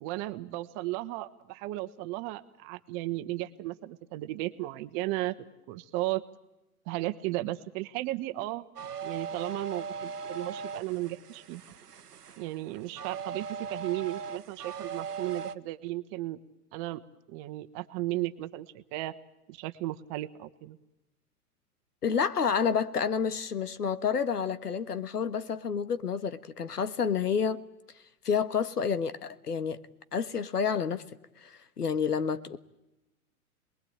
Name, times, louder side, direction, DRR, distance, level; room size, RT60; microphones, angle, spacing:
voice 1, 0.0-5.4 5.7-6.2 6.9-8.6 9.0-11.6 12.4-16.4 16.7-17.0 17.3-19.2 19.5-20.8, right 17 dB, 35° right, 1.4 m, -35 dB
sound 1, 8.8-15.6, right 5 dB, 85° right, 1.2 m, -39 dB
voice 2, 22.0-27.6 28.2-29.8 30.1-31.0 31.4-32.6, left 6 dB, 85° left, 1.6 m, -29 dB
27.0 x 21.0 x 8.8 m
hypercardioid pair, 115°, 46 cm